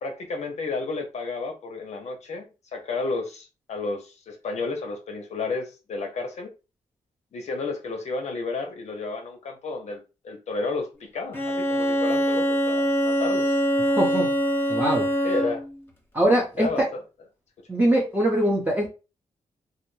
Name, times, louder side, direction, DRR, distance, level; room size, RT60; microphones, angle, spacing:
voice 1, 0.0-6.5 7.3-13.5 15.2-15.6 16.6-17.0, left 3 dB, 60° left, 0.5 m, -32 dB
Bowed string instrument, 11.3-15.7, equal, 15° left, 0.8 m, -23 dB
voice 2, 14.0-14.3 14.7-15.1 16.1-16.9 17.7-18.9, right 1 dB, 15° right, 0.6 m, -22 dB
2.2 x 2.1 x 3.0 m
cardioid pair, 90°, 13 cm